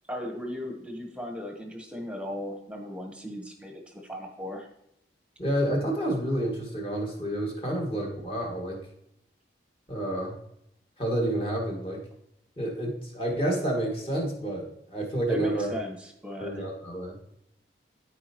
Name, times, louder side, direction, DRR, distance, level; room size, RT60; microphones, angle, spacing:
voice 1, 0.1-4.7 15.3-16.7, left 1 dB, 5° right, 2 dB, 1.1 m, -37 dB
voice 2, 5.4-8.8 9.9-10.3 11.0-12.0 12.6-15.7 16.4-17.2, right 1 dB, 30° left, -2 dB, 2.1 m, -29 dB
13.5 x 4.6 x 3.0 m, 0.77 s
head